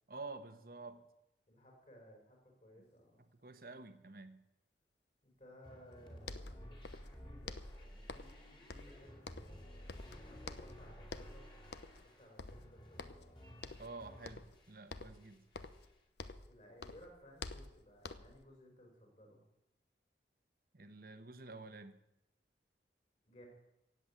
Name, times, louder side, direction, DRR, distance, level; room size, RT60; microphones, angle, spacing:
voice 1, 0.1-1.1 3.4-4.4 13.8-15.4 20.7-22.0, right 3 dB, 55° right, 9 dB, 1.1 m, -49 dB
voice 2, 1.4-3.2 5.2-6.8 7.2-9.9 10.2-11.5 12.0-13.2 16.5-19.4 23.2-23.5, equal, 40° left, 1 dB, 5.3 m, -60 dB
sound 1, 5.6-14.8 15.1-15.9, equal, 25° left, 2.7 m, -54 dB
sound 2, 5.9-6.0 6.2-7.2 7.5-8.4 8.7-9.6 9.9-10.8 11.1-11.4 11.7-12.1 12.4-13.3 13.6-13.9 14.2-14.6 14.9-16.5 16.8-18.4, left 3 dB, 75° left, 0.9 m, -48 dB
16.5 x 8.1 x 8.4 m, 0.88 s
head